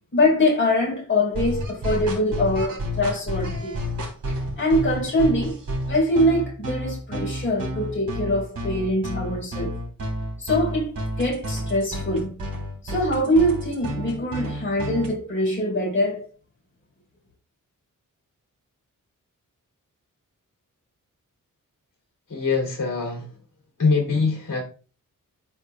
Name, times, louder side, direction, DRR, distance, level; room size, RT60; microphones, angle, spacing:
voice 1, 0.1-3.8 4.3-5.6 5.9-9.7 10.4-10.9 11.2-12.4 12.8-16.3, left 1 dB, 35° left, 4.3 m, -23 dB
sound 1, 1.3-15.1, equal, 80° right, 3.7 m, -30 dB
voice 2, 22.3-23.2 23.8-24.6, left 4 dB, 70° left, 3.1 m, -23 dB
12.5 x 4.8 x 2.4 m
wide cardioid pair, 125°, 33 cm